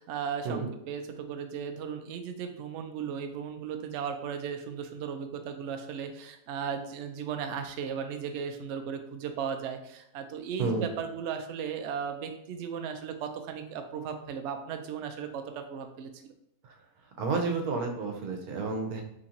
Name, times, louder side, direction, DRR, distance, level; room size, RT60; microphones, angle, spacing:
voice 1, 0.0-16.1, right 7 dB, 65° right, 6 dB, 0.7 m, -36 dB
voice 2, 17.2-19.0, right 4 dB, 85° right, 3 dB, 1.2 m, -30 dB
3.8 x 3.0 x 2.9 m, 0.82 s
omnidirectional pair, 1.5 m